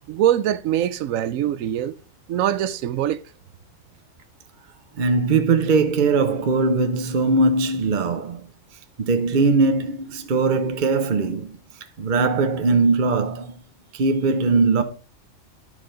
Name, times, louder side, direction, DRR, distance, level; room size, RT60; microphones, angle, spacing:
voice 1, 0.1-2.0 2.3-3.2, right 11 dB, 90° right, 1.0 m, -23 dB
voice 2, 5.0-8.5 9.0-11.6 12.0-13.5 13.9-14.8, right 3 dB, 45° right, 0.8 m, -20 dB
12.0 x 4.8 x 3.8 m
omnidirectional pair, 1.3 m